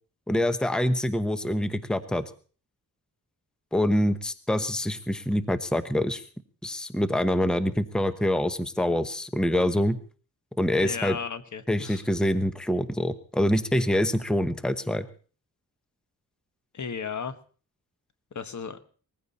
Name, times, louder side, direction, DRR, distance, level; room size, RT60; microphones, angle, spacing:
voice 1, 0.3-2.2 3.7-6.2 6.6-10.0 10.6-11.2 11.7-15.1, left 1 dB, ahead, 11 dB, 1.0 m, -25 dB
voice 2, 10.7-12.0 16.7-17.3 18.3-18.8, left 6 dB, 55° left, 11 dB, 1.4 m, -34 dB
20.5 x 15.0 x 4.2 m, 0.40 s
wide cardioid pair, 105°, 35 cm